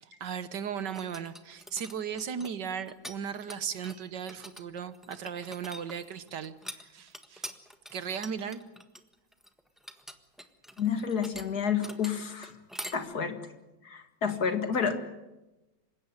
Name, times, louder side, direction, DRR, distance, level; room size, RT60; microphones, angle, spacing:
voice 1, 0.0-7.5 7.9-8.6, right 7 dB, 65° right, 13 dB, 1.7 m, -37 dB
sound 1, 0.8-3.2 3.4-12.9, equal, ahead, 1.2 m, -45 dB
voice 2, 10.8-12.5 12.9-13.4 13.8-15.0, left 6 dB, 55° left, 7 dB, 2.4 m, -30 dB
27.0 x 16.5 x 9.9 m, 1.0 s
omnidirectional pair, 2.0 m